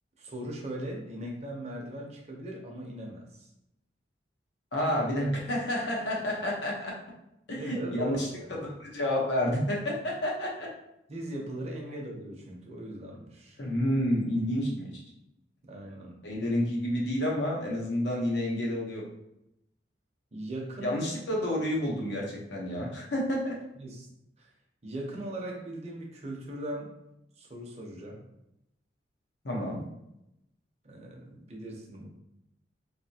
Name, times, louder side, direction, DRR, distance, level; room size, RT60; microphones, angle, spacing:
voice 1, 0.2-3.5 7.5-8.5 11.1-13.6 15.6-16.2 20.3-21.0 21.4-21.5 23.8-24.1 24.4-24.5 24.8-26.9 27.4-28.2 30.8-32.1, right 1 dB, 35° right, -1 dB, 0.7 m, -39 dB
voice 2, 4.7-6.9 7.5-8.3 8.6-10.7 13.6-14.9 16.2-19.0 20.8-23.6 29.4-29.8, left 1 dB, 70° left, -3 dB, 0.9 m, -29 dB
3.3 x 2.6 x 2.8 m, 0.84 s
head